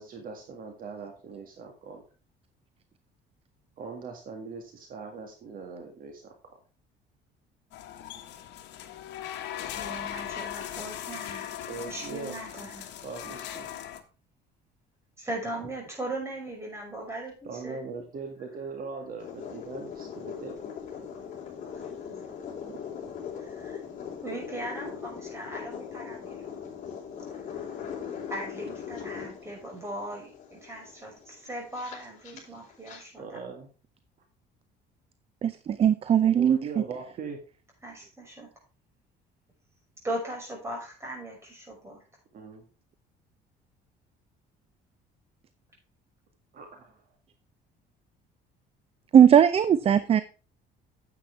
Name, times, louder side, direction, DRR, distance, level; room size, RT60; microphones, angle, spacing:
voice 1, 0.0-2.0 3.8-6.3 11.7-12.3 13.0-13.7 17.5-20.6 22.7-22.8 33.2-33.7 36.3-37.4 42.3-42.6 46.5-47.0, right 4 dB, 50° right, 3 dB, 2.0 m, -40 dB
sound 1, 7.7-14.0, left 11 dB, 75° left, 1.4 m, -39 dB
voice 2, 9.8-11.5 11.8-12.9 15.2-17.9 23.4-23.8 24.2-26.5 27.5-27.6 28.3-33.4 37.8-38.5 40.0-42.0, right 1 dB, 15° right, -1 dB, 5.7 m, -38 dB
sound 2, 19.2-33.0, left 7 dB, 40° left, 4.3 m, -40 dB
voice 3, 35.4-36.6 49.1-50.2, right 9 dB, 30° right, 14 dB, 0.5 m, -19 dB
9.9 x 8.1 x 3.4 m, 0.35 s
cardioid pair, 135°, 18 cm